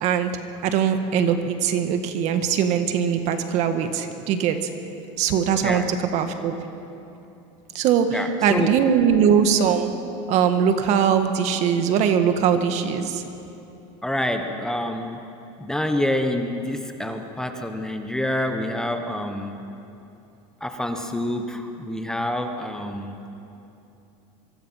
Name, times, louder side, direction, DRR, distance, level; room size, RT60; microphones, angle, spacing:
voice 1, 0.6-4.6 5.2-5.8 6.1-6.5 7.7-9.9 10.3-13.2, right 8 dB, 50° right, 7 dB, 1.8 m, -21 dB
voice 2, 5.6-5.9 8.1-8.7 14.0-15.3 15.6-19.6 20.6-23.3, left 1 dB, 5° left, 5 dB, 1.3 m, -27 dB
24.5 x 23.5 x 5.8 m, 2.8 s
supercardioid pair, 140°, 15 cm